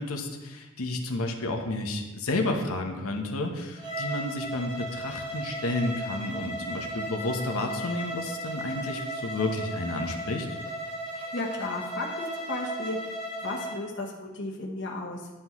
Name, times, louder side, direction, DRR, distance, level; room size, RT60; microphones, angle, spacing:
voice 1, 0.0-10.5, left 2 dB, 85° left, 3 dB, 0.9 m, -31 dB
Bowed string instrument, 3.7-13.8, right 1 dB, 20° right, 1.2 m, -36 dB
voice 2, 11.1-13.0 13.4-15.3, left 2 dB, 55° left, -1 dB, 1.0 m, -34 dB
11.0 x 5.7 x 3.1 m, 1.1 s
head